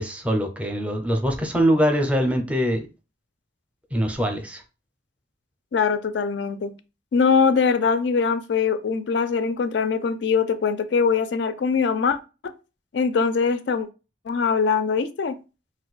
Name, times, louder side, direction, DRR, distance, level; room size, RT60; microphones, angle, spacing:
voice 1, 0.0-2.8 3.9-4.6, equal, 5° right, 0.5 m, -23 dB
voice 2, 5.7-6.7 7.1-12.2 12.9-13.9 14.3-15.4, left 5 dB, 65° left, 0.4 m, -22 dB
2.5 x 2.2 x 3.9 m
head